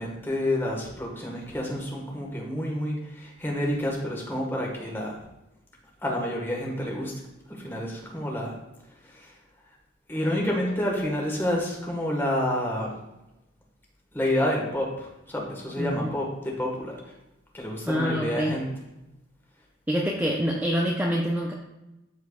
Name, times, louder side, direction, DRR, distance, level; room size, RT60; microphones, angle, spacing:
voice 1, 0.0-5.2 6.0-7.2 7.5-8.5 9.0-9.3 10.1-12.9 14.1-17.1 17.5-18.7, left 1 dB, 10° left, -1 dB, 1.5 m, -29 dB
voice 2, 15.8-16.1 17.8-18.5 19.9-21.5, equal, 10° right, -2 dB, 0.6 m, -26 dB
13.5 x 4.6 x 2.4 m, 0.96 s
head